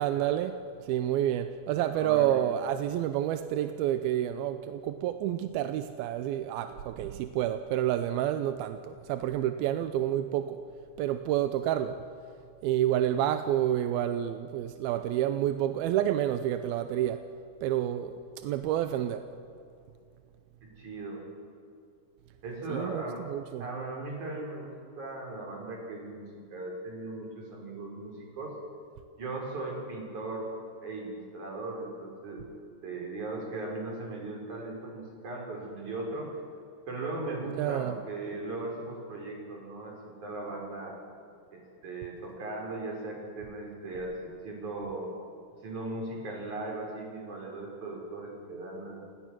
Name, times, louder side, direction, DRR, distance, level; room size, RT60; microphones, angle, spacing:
voice 1, 0.0-10.6 11.0-12.0 12.6-17.2 17.6-19.3 22.7-23.7 37.5-38.0, right 11 dB, 80° right, 2.4 m, -29 dB
voice 2, 1.9-2.4 20.6-21.2 22.4-23.2 23.6-28.5 29.2-30.5 30.8-32.5 32.8-36.3 36.9-41.0 41.5-45.1 45.6-49.0, right 2 dB, 45° right, 6.1 m, -38 dB
29.0 x 18.0 x 6.3 m
omnidirectional pair, 4.8 m